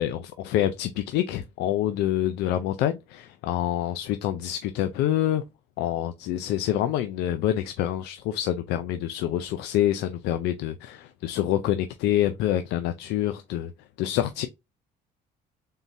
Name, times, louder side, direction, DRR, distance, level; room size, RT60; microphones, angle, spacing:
voice 1, 0.0-5.4 5.8-13.7 14.0-14.5, left 12 dB, 85° left, 0.4 m, -26 dB
4.0 x 3.8 x 2.6 m
cardioid pair, 110°, 17 cm